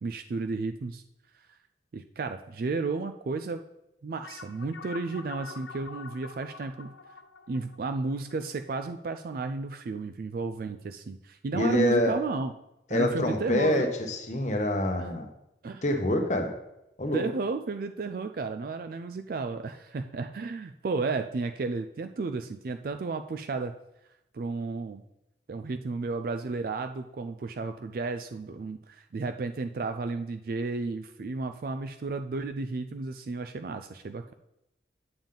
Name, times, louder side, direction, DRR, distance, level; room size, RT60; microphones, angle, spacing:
voice 1, 0.0-1.0 1.9-3.6 4.0-6.9 7.5-12.5 12.9-13.9 15.0-15.1 15.6-15.8 17.1-23.7 24.3-25.0 25.5-34.3, right 3 dB, 50° right, 7 dB, 0.3 m, -33 dB
sound 1, 4.2-9.1, left 5 dB, 85° left, 0.7 m, -46 dB
voice 2, 11.5-12.2 12.9-15.3 15.8-16.5 17.0-17.2, left 1 dB, 40° left, 4 dB, 1.0 m, -26 dB
8.8 x 7.2 x 3.8 m, 0.87 s
head